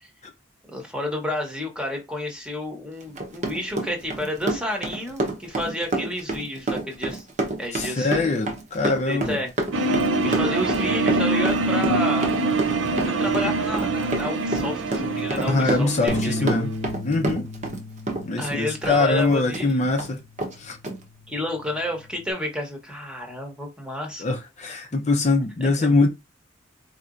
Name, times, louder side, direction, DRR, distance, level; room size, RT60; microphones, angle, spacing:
voice 1, 0.7-7.3 7.6-8.3 8.8-9.5 10.2-12.3 13.1-16.6 18.4-19.7 21.3-24.2 25.6-25.9, left 1 dB, 5° right, 1.0 m, -30 dB
Run, 3.0-17.8 18.1-19.7 20.0-20.1 20.4-20.5 20.8-21.0, right 2 dB, 40° right, 0.9 m, -28 dB
voice 2, 7.7-9.4 15.5-16.7 17.0-17.5 18.2-20.2 20.6-20.8 24.2-26.1, left 3 dB, 35° left, 0.6 m, -23 dB
sound 1, 9.7-16.7, right 2 dB, 70° right, 0.6 m, -24 dB
sound 2, 16.1-22.3, left 2 dB, 85° left, 0.9 m, -36 dB
4.4 x 2.9 x 2.5 m
head